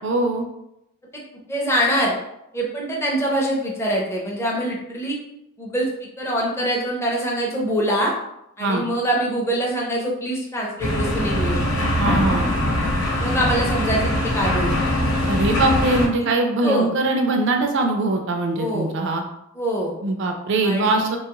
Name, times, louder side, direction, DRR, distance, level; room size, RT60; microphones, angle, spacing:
voice 1, 0.0-0.4 8.6-8.8 12.0-12.4 15.3-19.2 20.0-21.2, right 2 dB, 55° right, 3 dB, 0.3 m, -22 dB
voice 2, 1.5-2.1 2.5-5.2 5.6-5.9 6.2-8.1 8.6-11.6 13.2-14.9 16.6-16.9 18.5-18.9 19.6-19.9 20.6-21.2, right 1 dB, 10° left, -3 dB, 0.5 m, -24 dB
sound 1, 10.8-16.1, left 1 dB, 85° left, 1.0 m, -22 dB
3.0 x 2.3 x 2.8 m, 0.83 s
head